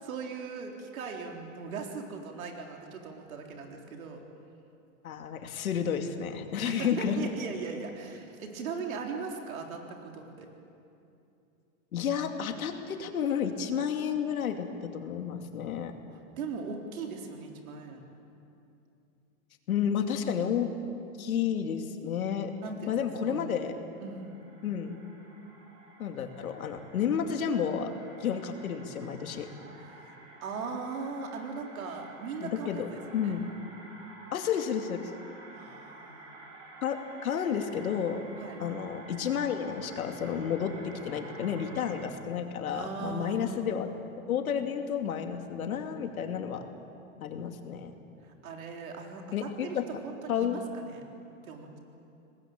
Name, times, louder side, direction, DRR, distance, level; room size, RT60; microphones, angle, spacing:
voice 1, 0.0-4.2 6.6-10.5 16.1-18.0 22.6-23.6 24.0-24.3 29.7-33.3 35.5-36.3 38.4-38.6 42.7-43.8 48.2-49.8 50.0-51.0 51.4-51.8, right 4 dB, 80° right, 2 dB, 4.0 m, -39 dB
voice 2, 5.0-7.3 11.9-14.7 14.9-15.9 19.7-20.7 21.2-22.5 22.9-23.7 24.6-24.9 26.0-27.9 28.2-29.5 32.4-32.9 33.1-33.5 34.3-35.1 36.8-38.2 38.6-43.9 44.3-46.6 47.2-47.9 49.3-49.8 50.3-50.6, left 8 dB, 85° left, 5 dB, 2.7 m, -31 dB
sound 1, 23.9-42.1, right 2 dB, 60° right, 5.6 m, -50 dB
24.5 x 20.0 x 9.0 m, 2.7 s
supercardioid pair, 160°, 42 cm